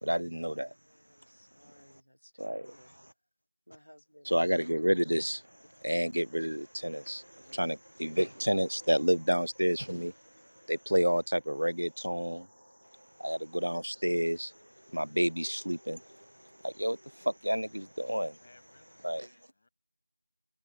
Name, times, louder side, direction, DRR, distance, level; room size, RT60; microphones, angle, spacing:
voice 1, 0.0-0.7 2.4-2.8 4.3-5.4 5.8-10.1 10.7-12.5 13.2-14.5 14.9-16.2 16.6-18.4 19.0-19.2, equal, 80° right, 0.4 m, -30 dB
voice 2, 0.8-2.9 3.7-4.4 7.4-7.8, equal, 85° left, 1.9 m, -58 dB
voice 3, 18.4-19.7, left 3 dB, 25° left, 7.5 m, -63 dB
figure-of-eight pair, 170°, 0 cm